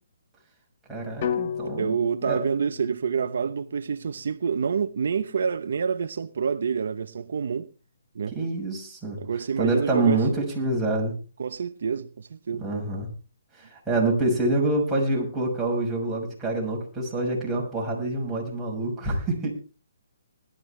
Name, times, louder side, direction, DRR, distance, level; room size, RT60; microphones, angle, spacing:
voice 1, 0.9-2.0 2.3-2.4 8.3-9.2 9.6-11.2 12.6-13.1 13.5-19.5, right 2 dB, 5° right, 6.1 m, -26 dB
sound 1, 1.2-5.3, left 8 dB, 35° left, 1.7 m, -35 dB
voice 2, 1.6-7.7 8.1-8.4 9.2-10.2 11.4-12.6, right 6 dB, 65° right, 0.9 m, -27 dB
20.5 x 13.0 x 3.4 m
hypercardioid pair, 160°, 0 cm